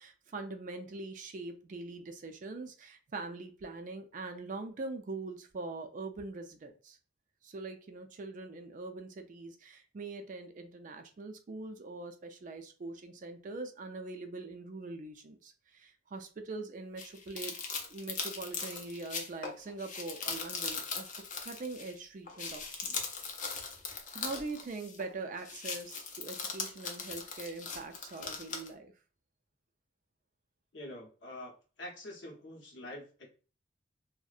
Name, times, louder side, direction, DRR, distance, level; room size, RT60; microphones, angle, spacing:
voice 1, 0.0-7.0 7.4-17.5 17.9-21.2 21.4-23.1 24.1-28.9, right 3 dB, 40° right, 6 dB, 0.3 m, -43 dB
sound 1, 17.0-22.0 22.3-25.1 25.4-28.7, left 5 dB, 40° left, 0.4 m, -40 dB
voice 2, 30.7-31.5 31.8-33.3, left 1 dB, 65° left, 0 dB, 0.8 m, -45 dB
2.6 x 2.1 x 2.3 m, 0.36 s
head